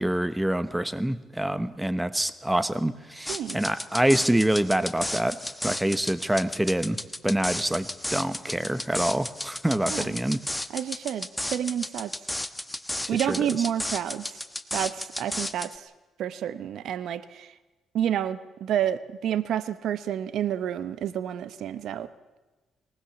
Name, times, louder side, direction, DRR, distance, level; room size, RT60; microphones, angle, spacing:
voice 1, 0.0-10.4 13.1-13.4, right 1 dB, 5° right, 13 dB, 1.1 m, -26 dB
sound 1, 3.3-15.8, left 1 dB, 10° left, 1.1 m, -34 dB
voice 2, 3.3-3.6 9.9-10.2 10.7-12.1 13.1-14.4 14.7-15.9 16.2-17.5 17.9-22.1, right 10 dB, 75° right, 14 dB, 0.9 m, -29 dB
22.5 x 19.0 x 7.1 m, 1.2 s
cardioid pair, 90°, 0 cm